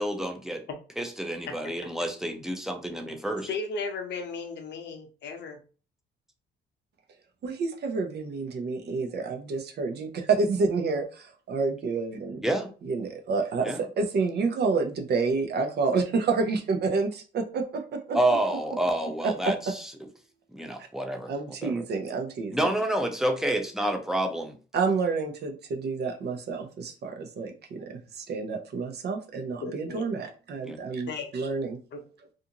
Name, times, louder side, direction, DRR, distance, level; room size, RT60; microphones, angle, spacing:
voice 1, 0.0-0.6 1.0-3.5 12.4-12.7 13.6-13.8 18.1-19.8 20.5-21.3 21.6-21.8 22.5-24.6 30.6-30.8, right 1 dB, ahead, 3 dB, 0.5 m, -28 dB
voice 2, 3.5-5.6 29.6-30.2 31.1-31.3 31.9-32.0, left 4 dB, 60° left, 4 dB, 0.7 m, -35 dB
voice 3, 7.4-12.4 12.8-18.2 19.2-19.7 21.3-22.7 24.7-31.8, right 4 dB, 55° right, 5 dB, 0.6 m, -29 dB
2.5 x 2.5 x 2.8 m, 0.37 s
cardioid pair, 90°, 20 cm